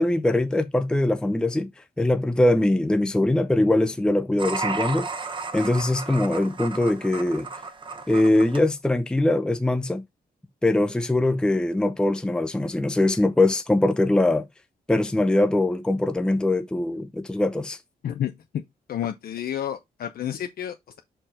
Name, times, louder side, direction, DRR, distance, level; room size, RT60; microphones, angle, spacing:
voice 1, 0.0-1.7 2.0-5.1 5.5-7.5 8.1-10.0 10.6-14.4 14.9-17.8, left 1 dB, 5° left, 0.5 m, -22 dB
sound 1, 4.4-8.6, right 4 dB, 30° right, 1.0 m, -33 dB
voice 2, 18.0-18.6 18.9-21.0, left 10 dB, 65° left, 0.7 m, -30 dB
5.8 x 4.5 x 3.8 m
wide cardioid pair, 140°, 17 cm